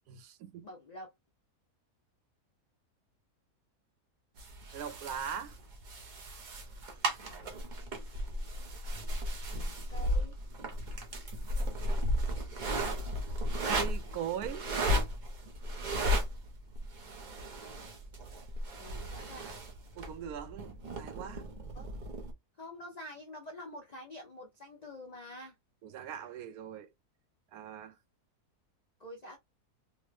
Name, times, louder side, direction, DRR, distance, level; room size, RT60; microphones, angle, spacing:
voice 1, 0.1-0.7 4.7-5.6 13.6-14.7 20.0-21.5 25.8-26.9 27.5-28.0, right 8 dB, 75° right, 1.1 m, -40 dB
voice 2, 0.6-1.1 7.2-7.6 9.5-10.4 18.8-19.6 21.7-21.9 22.6-25.5 29.0-29.4, left 1 dB, 70° left, 0.4 m, -47 dB
sound 1, 4.4-22.3, equal, 45° right, 0.6 m, -35 dB
3.4 x 2.0 x 3.2 m
omnidirectional pair, 1.7 m